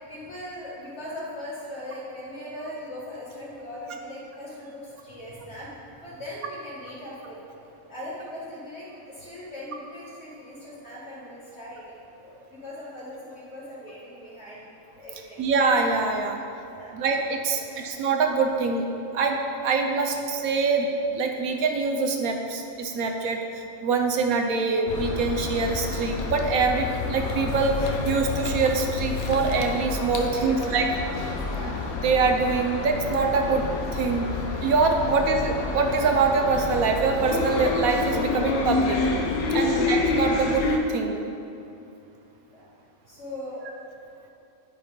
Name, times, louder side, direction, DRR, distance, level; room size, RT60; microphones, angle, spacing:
voice 1, 0.0-7.4 7.9-14.7 15.0-15.4 16.8-17.0 17.6-17.9 30.2-31.7 34.9-35.1 39.5-39.9 42.5-42.6 43.1-43.9, left 1 dB, 50° left, -7 dB, 2.3 m, -40 dB
voice 2, 15.4-16.4 16.9-18.9 19.1-19.4 19.6-23.4 23.8-30.9 32.0-33.6 33.9-34.3 34.6-39.0 39.5-41.2, right 4 dB, 80° right, 3 dB, 1.2 m, -24 dB
sound 1, 24.9-40.8, left 3 dB, 85° left, 1.2 m, -28 dB
9.9 x 4.3 x 5.2 m, 2.6 s
omnidirectional pair, 1.5 m